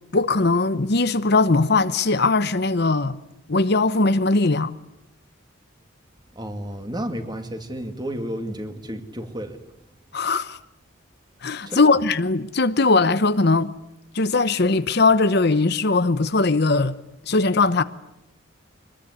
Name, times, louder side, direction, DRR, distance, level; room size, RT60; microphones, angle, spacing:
voice 1, 0.1-3.2 3.5-4.7 10.1-10.6 11.4-13.7 14.1-16.9 17.3-17.8, left 3 dB, 55° left, 0.9 m, -20 dB
voice 2, 6.4-9.6 11.7-12.0, equal, 20° right, 2.4 m, -32 dB
25.5 x 20.5 x 9.8 m
head